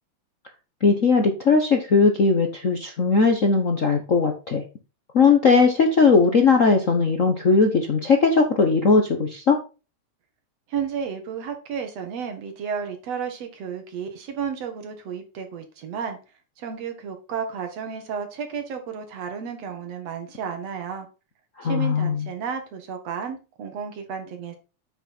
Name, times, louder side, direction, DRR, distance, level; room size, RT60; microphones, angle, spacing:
voice 1, 0.8-4.6 5.1-9.6 21.6-22.2, left 4 dB, 80° left, 4 dB, 0.7 m, -19 dB
voice 2, 10.7-16.2 16.6-21.1 21.6-24.6, right 6 dB, 60° right, 6 dB, 2.8 m, -32 dB
9.0 x 6.3 x 4.2 m, 0.32 s
omnidirectional pair, 3.3 m